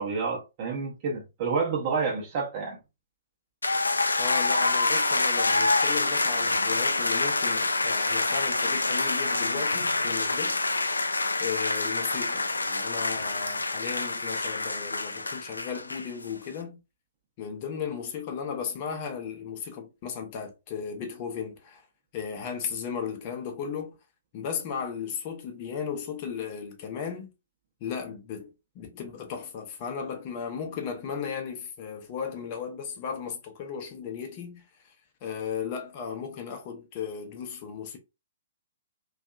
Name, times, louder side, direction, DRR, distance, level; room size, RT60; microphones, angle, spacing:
voice 1, 0.0-2.8, right 4 dB, 35° right, 0.7 m, -29 dB
sound 1, 3.6-16.3, left 3 dB, 80° left, 0.3 m, -26 dB
voice 2, 4.2-10.6 11.4-16.8 17.4-21.9 22.1-24.0 24.3-27.3 27.8-34.9 35.2-38.0, left 7 dB, 35° left, 0.6 m, -35 dB
2.7 x 2.3 x 2.3 m
figure-of-eight pair, 120°, 0 cm